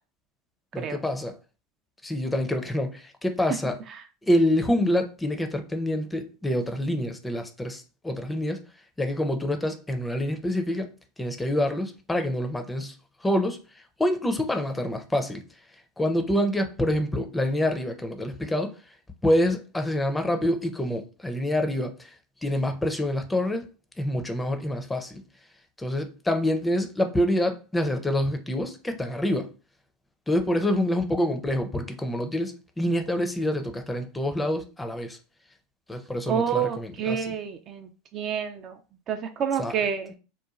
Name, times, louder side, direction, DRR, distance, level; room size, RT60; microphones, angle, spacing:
voice 1, 0.7-1.4 2.0-3.8 4.2-8.6 9.0-10.9 11.2-12.9 13.2-13.6 14.0-15.4 16.0-18.7 19.2-22.1 22.4-23.7 24.0-25.2 25.8-29.5 30.3-35.2 35.9-37.3 39.6-39.7, left 1 dB, 10° left, 0.5 m, -26 dB
voice 2, 36.3-38.8 39.1-40.1, right 7 dB, 40° right, 0.4 m, -28 dB
2.9 x 2.2 x 2.4 m
hypercardioid pair, 85°, 0 cm